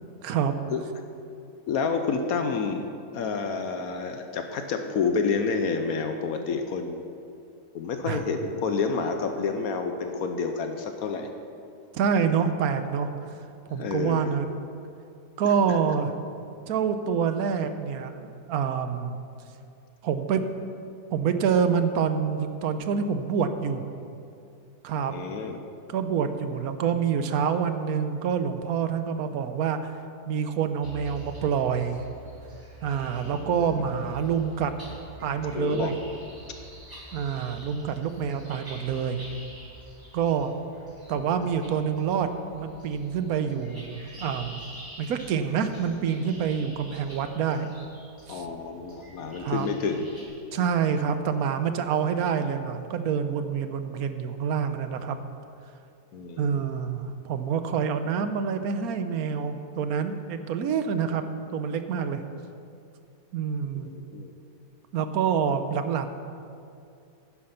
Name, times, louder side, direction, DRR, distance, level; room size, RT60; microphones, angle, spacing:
voice 1, 0.2-0.5 8.1-8.2 11.9-13.1 13.7-14.6 15.4-16.1 16.7-19.2 20.0-20.5 21.1-23.8 24.8-25.1 25.9-29.9 30.3-32.1 32.8-34.7 35.2-35.9 37.1-39.2 40.1-40.5 41.1-44.6 45.0-47.7 48.3-48.5 49.4-49.7 50.5-55.2 56.4-61.2 61.5-62.2 63.3-63.9 64.9-66.1, right 7 dB, 70° right, 9 dB, 1.2 m, -27 dB
voice 2, 1.7-2.9 3.1-7.0 7.7-11.3 13.7-14.3 15.7-15.8 25.1-25.6 33.2-33.9 35.5-35.9 48.3-50.1 56.1-56.6 63.7-64.3, left 5 dB, 70° left, 6 dB, 1.2 m, -29 dB
sound 1, 30.8-50.2, right 1 dB, 15° right, 2.5 m, -46 dB
10.5 x 9.7 x 5.7 m, 2.5 s
omnidirectional pair, 1.6 m